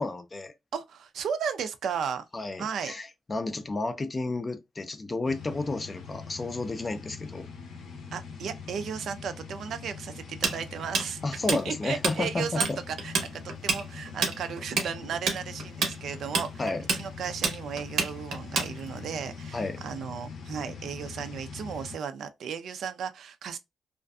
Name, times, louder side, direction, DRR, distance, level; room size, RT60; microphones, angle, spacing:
voice 1, 0.0-0.5 2.3-7.5 11.2-12.8 16.6-16.8 19.5-19.8, left 3 dB, 25° left, 0.4 m, -32 dB
voice 2, 0.7-2.3 2.6-2.9 8.1-11.4 11.6-13.1 13.4-23.6, right 7 dB, 65° right, 0.4 m, -35 dB
sound 1, 5.2-22.0, left 5 dB, 80° left, 0.6 m, -43 dB
Tools, 10.4-12.2 12.4-12.7 13.0-19.1, right 4 dB, 85° right, 0.9 m, -27 dB
2.5 x 2.4 x 2.2 m
cardioid pair, 145°, 0 cm